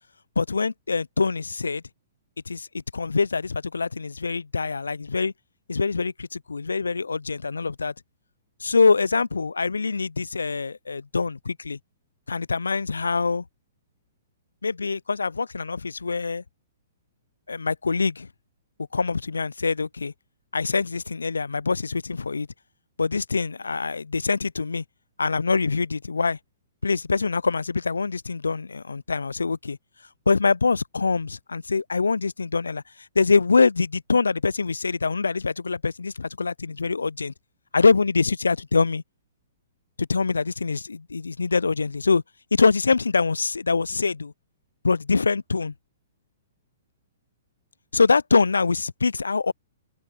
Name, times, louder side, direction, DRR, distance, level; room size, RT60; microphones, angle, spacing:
voice 1, 0.4-1.8 2.5-2.7 2.9-5.3 5.7-7.9 8.6-11.8 12.3-13.4 14.6-16.4 17.5-18.3 18.9-20.1 20.5-22.5 23.0-24.8 25.2-26.4 26.8-29.8 30.3-37.3 37.7-39.0 40.0-42.2 42.5-44.3 44.8-45.7 47.9-49.5, left 4 dB, 75° left, 0.5 m, -24 dB
open air
figure-of-eight pair, 115°, 0 cm